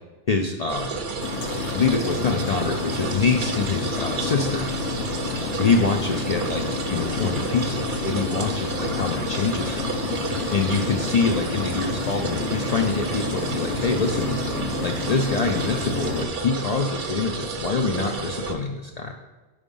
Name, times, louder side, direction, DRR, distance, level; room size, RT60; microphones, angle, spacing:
voice 1, 0.3-0.9 1.7-4.7 5.6-6.6 6.9-10.0 10.5-14.3 14.8-19.1, left 4 dB, 55° left, 3 dB, 0.4 m, -25 dB
sound 1, 0.7-18.5, right 4 dB, 55° right, 0.7 m, -31 dB
sound 2, 1.2-16.2, left 4 dB, 80° left, 1.0 m, -30 dB
5.0 x 4.9 x 5.3 m, 1.2 s
omnidirectional pair, 1.2 m